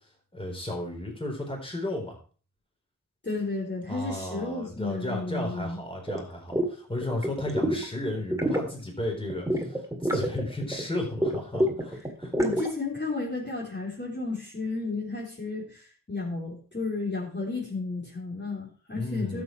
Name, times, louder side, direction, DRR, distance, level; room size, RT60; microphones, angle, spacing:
voice 1, 0.3-2.2 3.9-12.3 19.0-19.4, left 1 dB, 15° left, 0 dB, 4.3 m, -34 dB
voice 2, 3.2-5.8 12.3-19.4, left 3 dB, 30° left, -4 dB, 3.6 m, -33 dB
sound 1, 6.1-6.2 6.5-6.7 7.0-7.8 8.2-8.7 9.3-10.8 11.2-12.7, equal, 10° right, 2.0 m, -27 dB
12.0 x 7.0 x 4.6 m, 0.40 s
wide cardioid pair, 65°, 33 cm